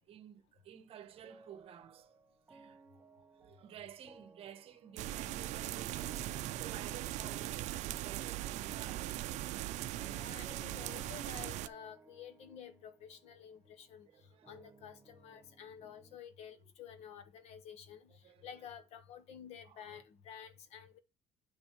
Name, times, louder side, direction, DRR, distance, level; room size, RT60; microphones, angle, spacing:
voice 1, 0.1-2.2 2.5-9.4 14.1-14.6 16.5-16.6 18.2-18.6 19.6-20.0, right 10 dB, 45° right, 1.1 m, -53 dB
sound 1, 1.2-16.2, right 3 dB, 15° right, 0.5 m, -60 dB
sound 2, 5.0-11.7, right 14 dB, 65° right, 0.5 m, -40 dB
voice 2, 10.1-21.0, left 8 dB, 55° left, 1.1 m, -51 dB
8.9 x 5.3 x 3.0 m
cardioid pair, 140°, 13 cm